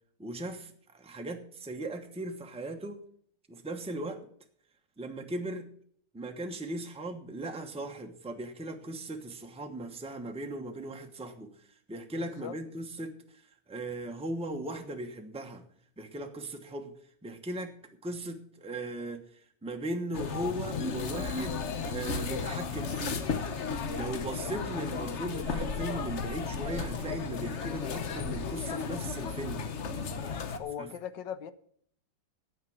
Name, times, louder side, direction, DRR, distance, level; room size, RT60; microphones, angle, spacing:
voice 1, 0.2-3.0 3.5-4.3 5.0-5.7 6.1-15.7 16.0-16.9 17.2-17.7 18.0-23.3 23.5-23.7 23.9-29.7 30.8-30.9, right 1 dB, 5° right, 0.7 m, -38 dB
voice 2, 12.1-12.5 30.6-31.5, left 9 dB, 85° left, 1.5 m, -39 dB
sound 1, 20.1-30.6, left 5 dB, 50° left, 1.0 m, -34 dB
9.4 x 8.3 x 7.7 m
omnidirectional pair, 1.9 m